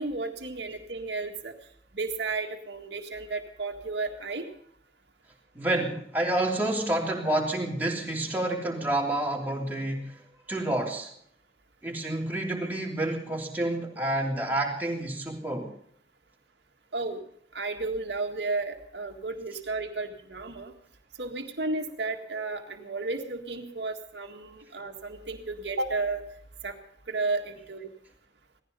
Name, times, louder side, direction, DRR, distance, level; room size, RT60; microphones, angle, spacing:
voice 1, 0.0-1.5 1.9-4.5 16.9-17.2 17.5-20.7 21.2-26.2 26.6-26.8 27.1-27.9, right 3 dB, 75° right, 3 dB, 1.9 m, -33 dB
voice 2, 5.5-10.2 10.5-11.1 11.8-15.7, right 1 dB, 10° right, -2 dB, 3.1 m, -29 dB
18.0 x 15.0 x 5.4 m, 0.67 s
head